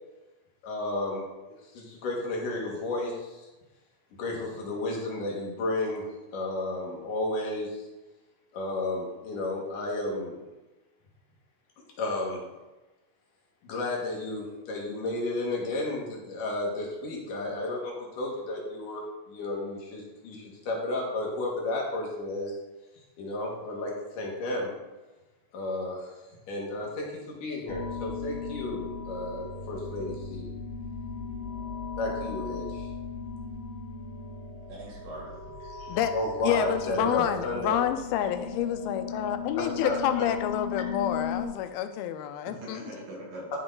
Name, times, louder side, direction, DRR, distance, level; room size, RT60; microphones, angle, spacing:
voice 1, 0.6-3.5 4.1-6.1 6.3-7.8 8.5-10.4 12.0-12.4 13.6-22.6 23.2-24.7 25.5-26.1 26.5-30.5 32.0-32.9 36.1-37.8 39.5-40.2, left 2 dB, 65° left, -2 dB, 2.9 m, -32 dB
sound 1, 27.7-41.5, left 5 dB, 40° left, 3.3 m, -37 dB
voice 2, 34.7-35.3 35.6-36.0 37.0-37.1 42.5-43.4, right 1 dB, 65° right, -4 dB, 4.0 m, -43 dB
voice 3, 36.4-42.9, left 10 dB, 85° left, 9 dB, 2.5 m, -29 dB
12.0 x 5.2 x 3.8 m, 1.1 s
omnidirectional pair, 4.3 m